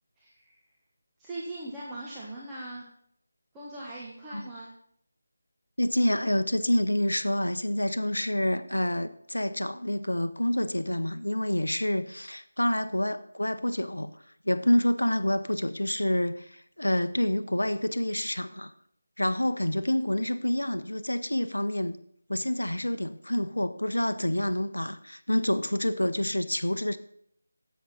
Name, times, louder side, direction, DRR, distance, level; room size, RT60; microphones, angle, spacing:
voice 1, 0.2-0.6 1.2-2.9 3.5-4.7, right 1 dB, 10° right, -6 dB, 1.2 m, -40 dB
voice 2, 5.8-14.2 14.4-18.7 19.2-22.0 22.3-27.0, left 1 dB, 85° left, 11 dB, 0.6 m, -27 dB
10.0 x 7.8 x 4.3 m, 0.68 s
figure-of-eight pair, 160°, 0 cm